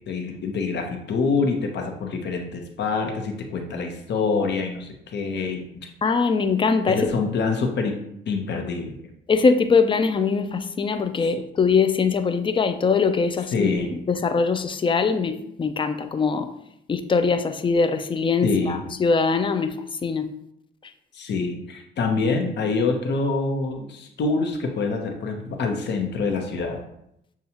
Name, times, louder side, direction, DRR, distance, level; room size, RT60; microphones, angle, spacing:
voice 1, 0.0-5.6 6.9-8.0 8.3-9.0 11.2-11.3 13.5-13.9 18.4-18.8 21.1-26.8, left 4 dB, 60° left, 3 dB, 0.9 m, -26 dB
voice 2, 6.0-7.2 9.3-16.5 16.9-19.7 20.0-20.3, left 5 dB, 25° left, 9 dB, 0.4 m, -22 dB
7.0 x 2.4 x 2.9 m, 0.77 s
cardioid pair, 90°, 20 cm